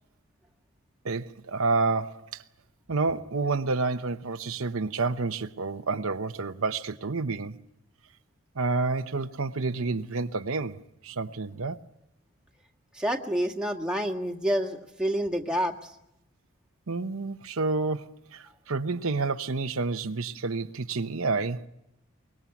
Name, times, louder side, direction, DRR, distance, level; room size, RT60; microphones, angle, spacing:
voice 1, 1.0-2.4 2.9-7.6 8.6-11.8 16.9-21.7, right 3 dB, 70° right, 0.9 m, -29 dB
voice 2, 12.9-15.7, equal, 5° right, 1.8 m, -28 dB
24.5 x 22.0 x 7.1 m
head